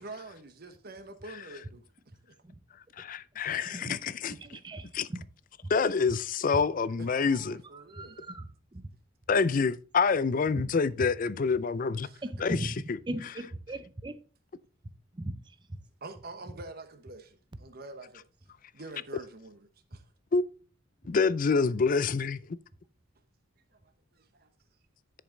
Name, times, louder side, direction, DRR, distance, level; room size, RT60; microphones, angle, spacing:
voice 1, 0.0-1.8 2.2-2.3 3.3-3.9 4.3-4.4 7.0-8.3 12.0-12.2 16.0-18.2 18.7-20.0 23.7-24.5, right 2 dB, 50° right, 1.1 m, -46 dB
voice 2, 3.0-4.3 4.9-5.1 5.7-7.6 9.3-12.1 12.4-13.0 20.3-20.4 21.0-22.4, left 5 dB, 45° left, 0.4 m, -27 dB
voice 3, 4.6-5.2 5.6-5.7 7.3-7.4 7.7-8.9 10.5-10.7 12.2-12.8 13.1-14.2 15.1-15.5, right 1 dB, 25° right, 0.6 m, -38 dB
10.5 x 5.2 x 3.9 m
head